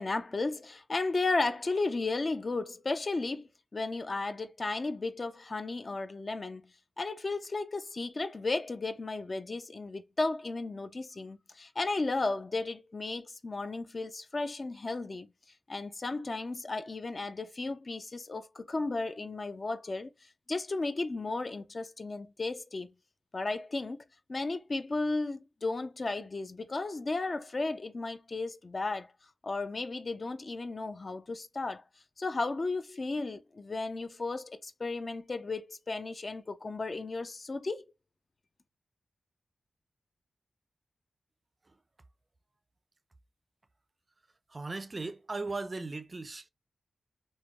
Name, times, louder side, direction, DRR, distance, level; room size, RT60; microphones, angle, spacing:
voice 1, 0.0-6.7 7.0-15.3 15.7-20.1 20.5-22.9 23.3-24.0 24.3-29.1 29.4-31.8 32.2-37.8, left 3 dB, 45° left, 0.4 m, -34 dB
voice 2, 44.5-46.5, right 3 dB, 35° right, 0.3 m, -37 dB
3.1 x 2.1 x 2.2 m
cardioid pair, 65°, 0 cm